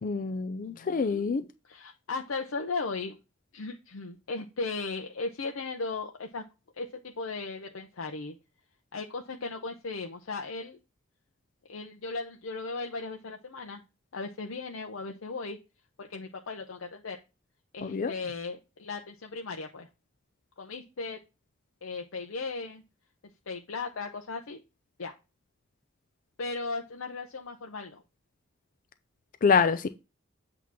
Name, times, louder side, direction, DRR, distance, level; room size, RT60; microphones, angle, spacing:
voice 1, 0.0-1.4 17.8-18.1 29.4-29.9, left 5 dB, 40° left, 0.4 m, -26 dB
voice 2, 0.6-1.3 1.6-3.2 3.5-6.4 6.8-8.3 8.9-10.8 11.7-13.8 14.1-15.6 16.0-17.2 17.7-19.9 20.6-21.2 21.8-22.8 23.5-24.6 25.0-25.1 26.4-28.0, left 3 dB, 75° left, 0.7 m, -37 dB
8.1 x 3.0 x 6.0 m
head